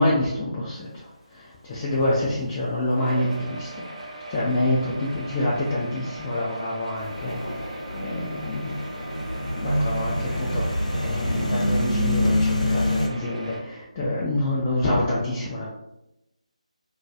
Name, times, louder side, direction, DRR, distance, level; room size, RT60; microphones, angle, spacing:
voice 1, 0.0-8.7 9.5-15.7, left 1 dB, 20° left, -7 dB, 0.3 m, -27 dB
Thunder / Rain, 0.7-11.9, left 1 dB, 45° left, 0.8 m, -42 dB
sound 1, 2.9-13.6, right 1 dB, 60° right, 0.5 m, -39 dB
sound 2, 7.0-13.1, left 1 dB, 80° left, 0.6 m, -26 dB
2.2 x 2.2 x 2.6 m, 0.88 s
figure-of-eight pair, 155°, 4 cm